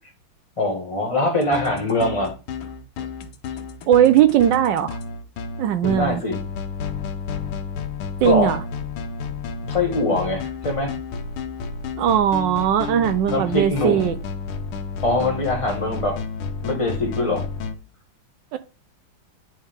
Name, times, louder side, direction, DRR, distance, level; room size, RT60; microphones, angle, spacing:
voice 1, 0.6-2.3 3.0-3.1 5.8-6.4 8.2-8.5 9.6-10.9 13.3-14.1 15.0-16.2 16.6-17.5, left 2 dB, 20° left, 1.1 m, -23 dB
sound 1, 1.4-17.8, left 5 dB, 90° left, 1.6 m, -31 dB
voice 2, 3.9-5.0 5.6-6.2 8.2-8.6 12.0-14.2 18.5-18.6, right 10 dB, 75° right, 1.1 m, -18 dB
9.5 x 3.3 x 3.5 m
omnidirectional pair, 2.3 m